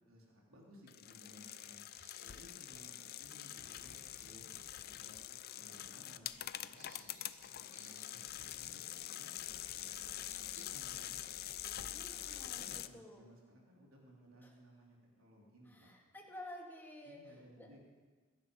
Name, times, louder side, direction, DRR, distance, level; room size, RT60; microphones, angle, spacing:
voice 1, 0.1-1.8 2.2-4.5 4.9-5.2 5.5-8.8 9.1-9.3 9.7-11.2 11.7-11.9 12.4-15.9 17.0-17.9, equal, 70° right, -2 dB, 3.7 m, -60 dB
sound 1, 0.9-12.9, left 12 dB, 45° left, 0.5 m, -45 dB
Bird vocalization bird call bird song, 1.0-9.4 9.7-11.9, right 2 dB, 40° right, 4.7 m, -65 dB
voice 2, 11.9-13.2 14.4-14.6 15.7-17.3 17.6-17.7, left 1 dB, 10° left, -1 dB, 2.4 m, -52 dB
21.5 x 11.0 x 5.7 m, 1.4 s
head